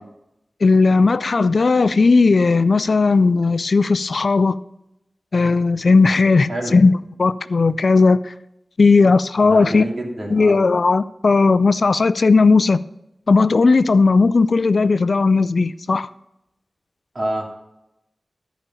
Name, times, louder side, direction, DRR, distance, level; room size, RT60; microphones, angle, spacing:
voice 1, 0.6-4.6 5.3-8.3 8.8-9.9 10.3-12.8 13.3-16.1, left 4 dB, 70° left, 0.3 m, -16 dB
voice 2, 9.4-10.6 17.1-17.4, right 1 dB, 55° right, 2.7 m, -27 dB
11.0 x 5.0 x 5.5 m
wide cardioid pair, 55°, 0 cm